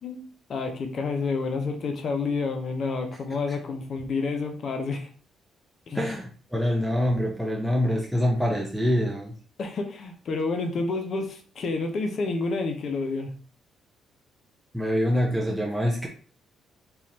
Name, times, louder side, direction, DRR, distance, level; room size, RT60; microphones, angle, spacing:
voice 1, 0.0-5.1 5.9-6.1 9.6-13.3, left 3 dB, 55° left, 4 dB, 0.8 m, -29 dB
voice 2, 5.9-9.3 14.7-16.1, equal, ahead, 0 dB, 0.7 m, -25 dB
3.9 x 3.0 x 2.8 m, 0.41 s
cardioid pair, 90°, 0 cm